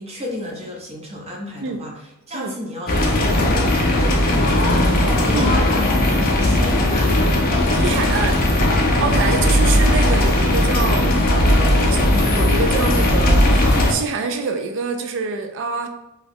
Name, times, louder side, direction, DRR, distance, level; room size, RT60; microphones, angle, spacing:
voice 1, 0.0-4.9 5.2-7.2, left 1 dB, 30° right, -1 dB, 0.7 m, -32 dB
sound 1, 2.9-13.9, left 1 dB, 40° left, 0.5 m, -17 dB
voice 2, 7.7-8.5 9.0-11.1 11.7-15.9, right 4 dB, 55° right, 6 dB, 0.3 m, -25 dB
2.9 x 2.2 x 3.5 m, 0.93 s
head